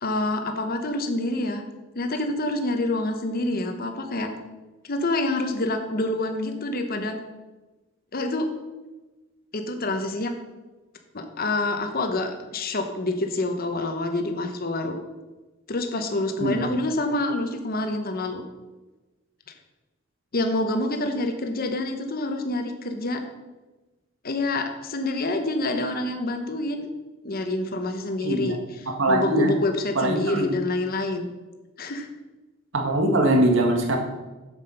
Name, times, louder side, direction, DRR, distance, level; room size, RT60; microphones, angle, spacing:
voice 1, 0.0-1.6 1.9-4.3 4.8-7.2 8.1-8.5 9.5-10.3 11.1-15.0 15.7-18.4 20.3-23.2 24.2-26.9 27.2-31.3 31.8-32.1, left 2 dB, 50° left, 6 dB, 1.0 m, -27 dB
voice 2, 28.2-28.5 29.0-29.5 29.9-30.5 32.7-34.0, right 1 dB, 65° right, 2 dB, 1.7 m, -22 dB
7.5 x 7.3 x 5.7 m, 1.1 s
head